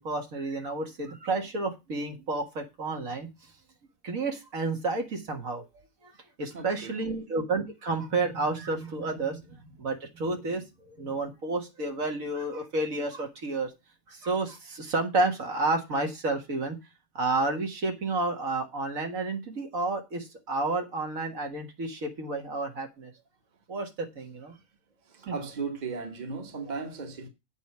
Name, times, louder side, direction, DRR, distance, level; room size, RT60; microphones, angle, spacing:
voice 1, 0.0-3.5 4.0-6.1 6.4-13.7 14.1-16.8 17.2-23.1 23.7-24.6 25.3-25.4, right 3 dB, 70° right, 2.1 m, -31 dB
voice 2, 6.5-7.2 24.5-24.6 25.0-27.3, right 4 dB, 30° right, 1.3 m, -37 dB
8.2 x 4.7 x 7.1 m
omnidirectional pair, 1.5 m